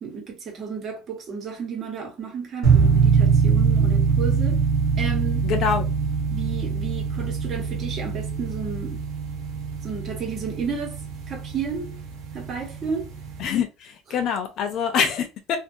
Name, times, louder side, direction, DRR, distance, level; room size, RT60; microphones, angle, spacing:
voice 1, 0.0-4.6 5.0-5.4 6.3-9.0 9.8-11.0 11.3-12.0 12.3-13.1, right 6 dB, 40° right, 1.0 m, -32 dB
sound 1, 2.6-13.4, right 5 dB, 60° right, 0.9 m, -23 dB
voice 2, 5.4-5.9 13.4-15.6, left 7 dB, 50° left, 0.6 m, -25 dB
2.6 x 2.5 x 2.7 m
cardioid pair, 145°, 0 cm